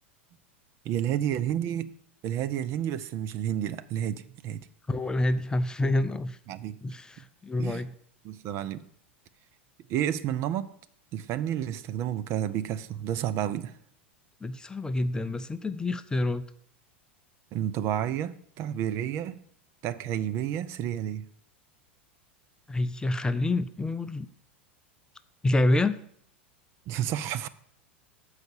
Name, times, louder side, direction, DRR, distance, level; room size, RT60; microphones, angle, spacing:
voice 1, 0.8-1.9 2.2-4.7 6.5-6.8 7.6-7.8 8.2-8.8 9.9-10.7 11.1-13.7 17.5-19.4 19.8-21.3 26.9-27.5, right 10 dB, 45° right, 0.5 m, -30 dB
voice 2, 4.9-6.4 6.8-7.9 14.4-16.4 22.7-24.3 25.4-26.0, left 2 dB, 10° left, 0.4 m, -27 dB
7.7 x 4.9 x 7.1 m
hypercardioid pair, 90°, 6 cm